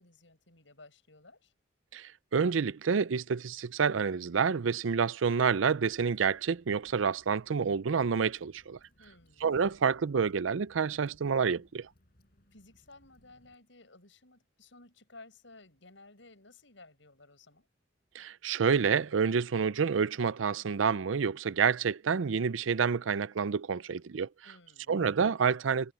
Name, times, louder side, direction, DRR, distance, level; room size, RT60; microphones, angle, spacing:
voice 1, 0.0-1.5 9.0-9.5 12.5-17.7 24.4-25.0, left 2 dB, 75° left, 6.9 m, -56 dB
voice 2, 1.9-8.8 9.4-11.9 18.1-24.3 24.9-25.9, right 6 dB, 85° right, 0.5 m, -28 dB
Water / Drip, 5.6-13.6, equal, 50° left, 6.0 m, -66 dB
head